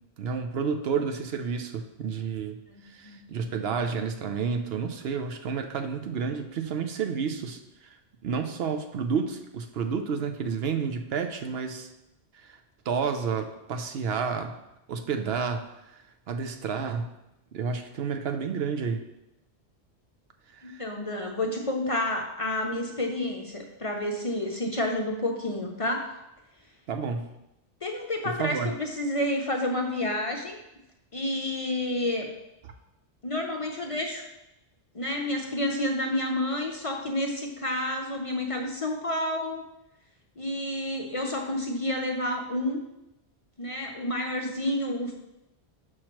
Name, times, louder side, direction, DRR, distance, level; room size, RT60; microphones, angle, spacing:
voice 1, 0.2-2.6 2.9-7.6 8.2-11.9 12.4-12.6 12.9-14.6 14.9-15.6 16.3-17.1 17.5-19.0 20.6-20.8 26.9-27.3 28.4-28.7, right 6 dB, 70° right, 6 dB, 0.8 m, -30 dB
voice 2, 2.7-3.2 20.6-26.2 27.8-30.6 31.1-32.3 33.2-34.3 34.9-39.6 40.4-42.8 43.6-45.1, left 1 dB, 40° left, 1 dB, 0.6 m, -30 dB
6.4 x 5.9 x 3.0 m, 0.89 s
omnidirectional pair, 1.1 m